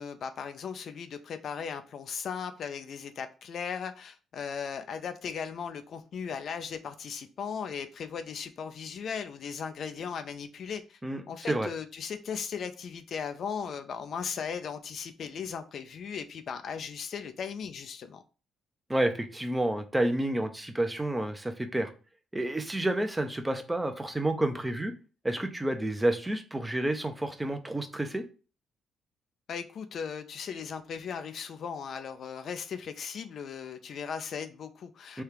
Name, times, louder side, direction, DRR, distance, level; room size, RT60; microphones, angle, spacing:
voice 1, 0.0-11.0 11.3-18.2 29.5-35.2, left 6 dB, 60° left, 0.4 m, -37 dB
voice 2, 18.9-21.9 22.3-24.9 25.2-28.2 35.1-35.2, right 1 dB, 10° right, 0.6 m, -29 dB
3.3 x 2.4 x 4.4 m
cardioid pair, 90°, 0 cm